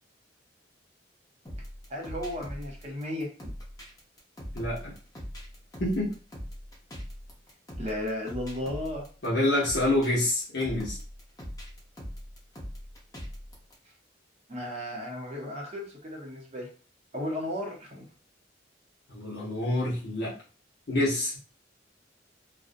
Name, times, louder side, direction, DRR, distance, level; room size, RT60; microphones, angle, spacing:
sound 1, 1.5-13.7, equal, 20° left, 0.7 m, -41 dB
voice 1, 1.9-3.5 7.8-9.1 14.5-16.7 17.1-18.0, left 1 dB, 35° right, -1 dB, 0.6 m, -35 dB
voice 2, 4.5-4.9 5.8-6.1 9.2-11.0 19.1-20.4 20.9-21.3, left 1 dB, 65° left, -7 dB, 0.8 m, -27 dB
2.4 x 2.0 x 2.4 m, 0.37 s
head